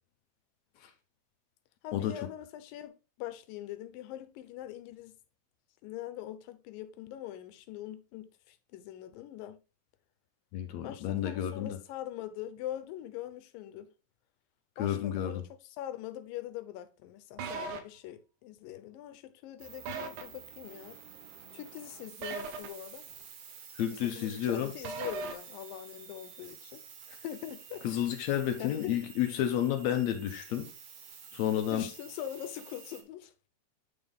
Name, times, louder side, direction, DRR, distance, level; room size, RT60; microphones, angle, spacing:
voice 1, 1.8-5.2 5.8-9.6 10.8-13.9 14.8-15.4 15.8-21.0 21.5-23.1 24.0-26.8 27.1-27.8 28.6-29.1 31.6-33.3, left 12 dB, 90° left, 2.4 m, -43 dB
voice 2, 10.5-11.8 14.8-15.4 23.8-24.7 27.8-30.7 31.3-31.9, left 10 dB, 70° left, 1.8 m, -31 dB
sound 1, 17.4-17.8 19.8-20.2 22.2-22.7 24.8-25.3, right 4 dB, 85° right, 2.6 m, -36 dB
sound 2, 19.6-33.0, right 7 dB, 65° right, 1.6 m, -51 dB
9.1 x 3.5 x 3.8 m
omnidirectional pair, 3.9 m